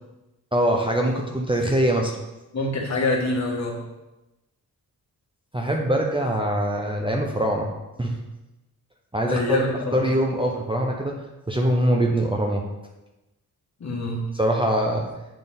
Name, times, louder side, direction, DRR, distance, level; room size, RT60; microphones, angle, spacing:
voice 1, 0.5-2.1 5.5-7.7 8.0-8.1 9.1-9.6 9.9-11.1 11.5-12.6 14.3-15.0, right 1 dB, 15° right, 0 dB, 0.6 m, -23 dB
voice 2, 2.5-3.8 9.3-10.0 13.8-14.2, left 2 dB, 50° left, -2 dB, 1.5 m, -25 dB
8.9 x 4.0 x 3.5 m, 1.0 s
wide cardioid pair, 145°, 35 cm